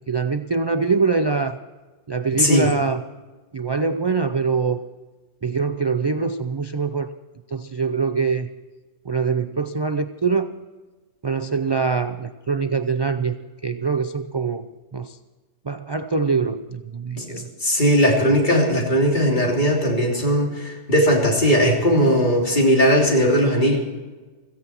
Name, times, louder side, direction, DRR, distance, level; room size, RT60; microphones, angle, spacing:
voice 1, 0.1-1.6 2.1-3.0 3.5-4.8 5.4-7.1 7.5-8.5 9.1-10.6 11.2-13.4 13.6-14.6 14.9-15.2 15.7-17.5, right 4 dB, 40° right, 9 dB, 0.3 m, -23 dB
voice 2, 2.4-2.7 17.2-23.8, equal, 40° left, -1 dB, 3.3 m, -18 dB
16.5 x 15.5 x 4.4 m, 1.3 s
omnidirectional pair, 1.2 m